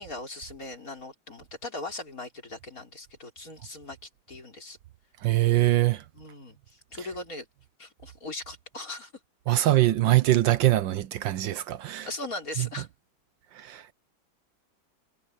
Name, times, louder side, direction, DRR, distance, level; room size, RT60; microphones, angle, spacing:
voice 1, 0.0-4.8 6.1-7.5 7.8-9.1 9.5-9.7 12.0-12.9, left 2 dB, 45° left, 4.7 m, -39 dB
voice 2, 5.2-6.0 9.5-12.1 12.6-12.7 13.5-13.9, right 15 dB, 75° right, 1.4 m, -23 dB
omnidirectional pair, 2.2 m